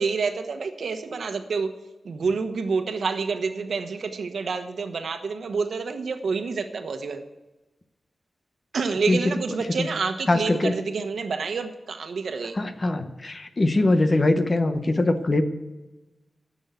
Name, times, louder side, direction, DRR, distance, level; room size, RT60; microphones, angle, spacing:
voice 1, 0.0-1.7 2.0-7.2 8.7-12.5, right 4 dB, 85° right, 7 dB, 1.1 m, -28 dB
voice 2, 10.3-10.7 12.5-15.4, left 2 dB, 35° left, 9 dB, 1.0 m, -22 dB
16.0 x 6.4 x 8.1 m, 1.1 s
wide cardioid pair, 145°, 0 cm